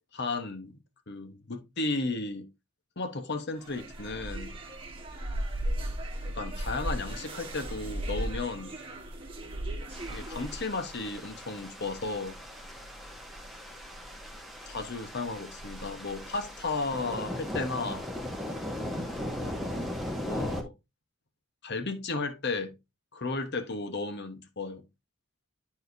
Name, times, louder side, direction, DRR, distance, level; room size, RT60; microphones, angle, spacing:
voice 1, 0.1-0.8 1.1-2.5 3.0-4.5 6.3-8.7 10.1-12.4 14.7-18.1 20.2-20.7 21.6-22.7 23.1-24.8, left 3 dB, 50° left, 1.1 m, -34 dB
sound 1, 3.6-10.7, right 1 dB, 25° right, 1.5 m, -36 dB
sound 2, 9.9-20.6, left 1 dB, ahead, 1.2 m, -38 dB
12.0 x 4.3 x 2.6 m
head